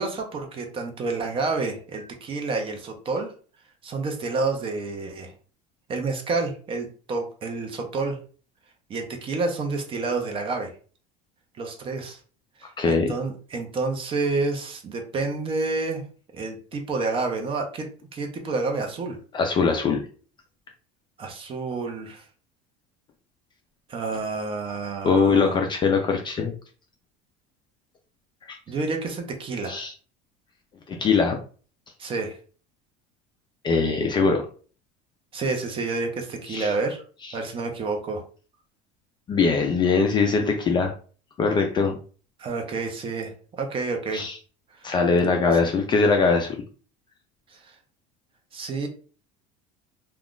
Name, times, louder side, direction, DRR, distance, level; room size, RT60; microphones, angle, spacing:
voice 1, 0.0-3.3 3.8-5.3 5.9-8.2 8.9-10.7 11.6-12.2 12.6-16.0 16.3-19.2 21.2-22.2 23.9-25.6 28.7-29.8 32.0-32.4 35.3-37.0 37.3-38.2 42.4-44.2 44.8-44.9 47.5-47.6 48.5-48.9, right 3 dB, 25° right, 4 dB, 0.6 m, -29 dB
voice 2, 12.8-13.1 19.3-20.0 25.0-26.5 28.5-28.6 29.7-29.9 30.9-31.4 33.6-34.5 36.5-36.7 39.3-40.9 41.4-42.0 44.1-44.4 44.8-46.6, left 4 dB, 25° left, 3 dB, 0.3 m, -21 dB
2.4 x 2.3 x 3.5 m, 0.40 s
cardioid pair, 145°, 20 cm